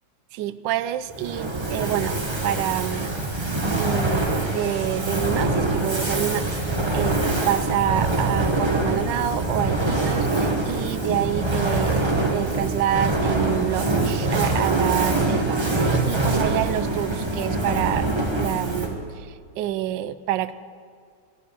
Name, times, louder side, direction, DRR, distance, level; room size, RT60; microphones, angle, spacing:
voice 1, 0.3-3.1 3.6-12.0 12.3-20.5, right 12 dB, 75° right, 13 dB, 1.2 m, -28 dB
Fire, 1.1-19.1, right 2 dB, 20° right, 0.9 m, -24 dB
15.0 x 7.3 x 8.4 m, 2.2 s
omnidirectional pair, 2.1 m